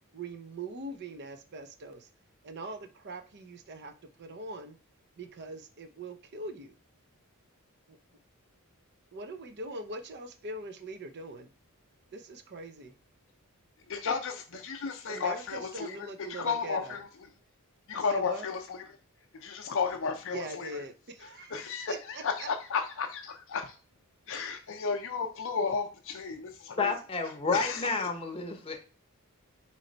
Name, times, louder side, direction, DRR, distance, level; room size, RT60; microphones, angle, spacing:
voice 1, 0.1-2.1 2.4-4.8 5.2-6.7 7.9-8.0 9.1-11.5 12.1-12.9 15.1-17.0 18.1-18.5 20.3-21.6 21.9-22.5, right 2 dB, 50° right, 0.6 m, -42 dB
voice 2, 13.9-17.1 17.9-19.0 19.3-20.8 21.5-23.8 24.3-26.9 27.5-27.9, left 5 dB, 60° left, 0.5 m, -33 dB
voice 3, 26.8-28.8, left 4 dB, 25° left, 0.7 m, -30 dB
4.2 x 3.1 x 3.9 m
head